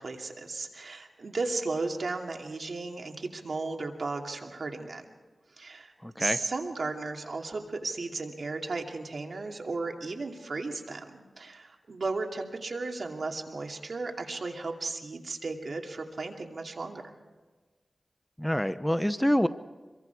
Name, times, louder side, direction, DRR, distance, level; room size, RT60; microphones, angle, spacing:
voice 1, 0.0-5.0 5.6-5.9 6.2-17.1, right 3 dB, 70° right, 2 dB, 2.6 m, -35 dB
voice 2, 6.0-6.4 18.4-19.5, equal, 5° left, 11 dB, 0.8 m, -26 dB
26.0 x 23.0 x 4.7 m, 1.3 s
wide cardioid pair, 60°, 0 cm